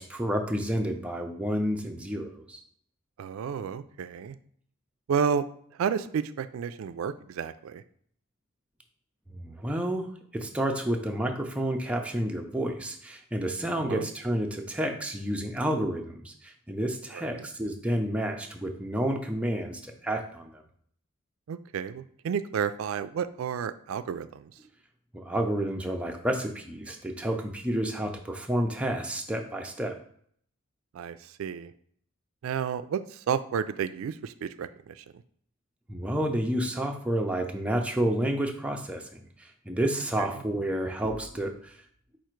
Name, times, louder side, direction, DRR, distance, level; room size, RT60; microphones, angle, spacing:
voice 1, 0.0-2.6 9.3-20.5 25.1-30.0 35.9-41.7, right 1 dB, 5° right, 2 dB, 0.4 m, -30 dB
voice 2, 3.2-4.4 5.1-5.4 5.8-7.8 13.9-14.1 17.1-17.5 21.5-24.5 30.9-31.7 32.4-35.0 40.3-40.4, right 7 dB, 80° right, 12 dB, 0.3 m, -31 dB
4.8 x 2.5 x 4.4 m, 0.62 s
head